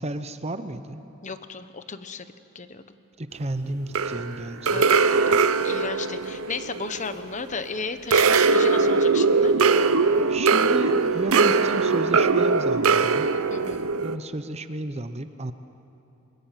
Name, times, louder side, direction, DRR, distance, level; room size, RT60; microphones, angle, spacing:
voice 1, 0.0-1.0 3.2-4.8 10.3-13.3 14.0-15.5, right 2 dB, 30° right, 10 dB, 0.9 m, -32 dB
voice 2, 1.2-2.3 2.5-2.8 4.7-4.9 5.3-9.5 13.5-13.9, left 4 dB, 35° left, 10 dB, 1.0 m, -34 dB
sound 1, 3.9-7.6 8.1-14.2, right 4 dB, 70° right, 0.8 m, -21 dB
24.0 x 21.5 x 9.2 m, 2.8 s
head